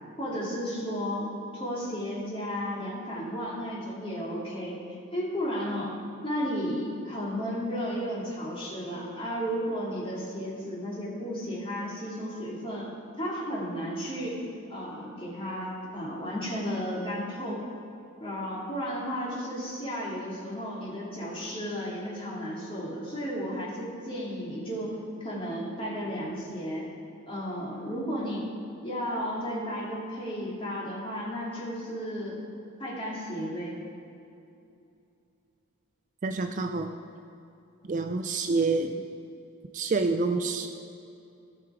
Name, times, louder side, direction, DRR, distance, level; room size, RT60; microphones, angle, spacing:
voice 1, 0.2-4.8 5.1-5.9 6.2-12.9 13.2-14.4 14.7-17.6 18.2-24.9 25.2-26.8 27.3-28.4 28.8-32.4 32.8-33.8, equal, 25° left, -6 dB, 2.4 m, -33 dB
voice 2, 36.2-36.9 37.9-39.0 39.7-40.7, right 3 dB, 35° right, 7 dB, 0.4 m, -27 dB
16.0 x 6.1 x 4.9 m, 2.6 s
head